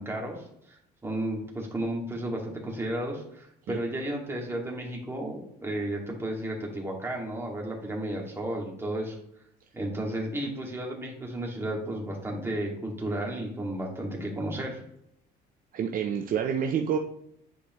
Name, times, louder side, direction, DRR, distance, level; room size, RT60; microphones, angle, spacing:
voice 1, 0.0-9.2 9.7-14.8, right 1 dB, 15° right, -1 dB, 2.2 m, -33 dB
voice 2, 15.7-17.0, right 8 dB, 55° right, 4 dB, 0.7 m, -28 dB
10.0 x 4.9 x 3.1 m, 0.74 s
cardioid pair, 110°, 17 cm